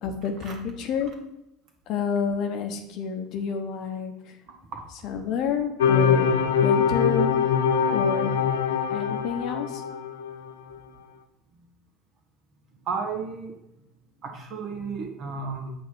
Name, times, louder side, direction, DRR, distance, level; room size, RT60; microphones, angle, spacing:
voice 1, 0.0-1.1 1.9-4.4 5.0-6.3 6.6-7.3 7.9-8.3 8.9-9.8, left 7 dB, 50° left, 5 dB, 1.0 m, -29 dB
voice 2, 4.5-4.9 12.8-13.5 14.2-15.7, right 5 dB, 40° right, 3 dB, 1.5 m, -33 dB
sound 1, 5.8-10.4, left 6 dB, 70° left, 0.5 m, -23 dB
8.0 x 3.0 x 6.3 m, 0.86 s
figure-of-eight pair, 70°, 0 cm